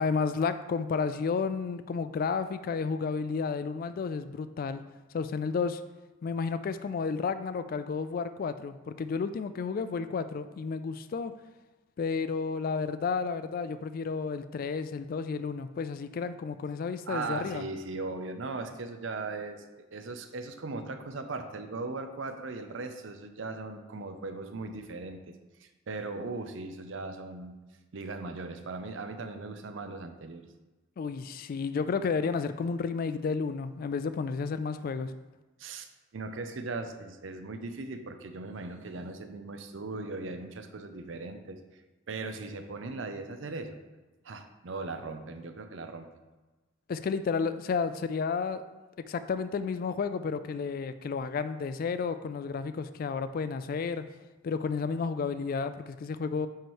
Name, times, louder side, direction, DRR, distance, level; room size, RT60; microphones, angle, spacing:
voice 1, 0.0-4.8 5.1-5.8 6.2-11.3 12.0-17.6 31.0-35.1 46.9-48.6 49.1-54.0 54.4-56.5, left 5 dB, 45° left, 12 dB, 0.3 m, -32 dB
voice 2, 17.1-25.3 25.6-27.5 27.9-30.4 35.6-41.6 42.1-43.8 44.2-46.1, right 3 dB, 70° right, 8 dB, 0.6 m, -38 dB
9.2 x 3.2 x 4.6 m, 1.2 s
head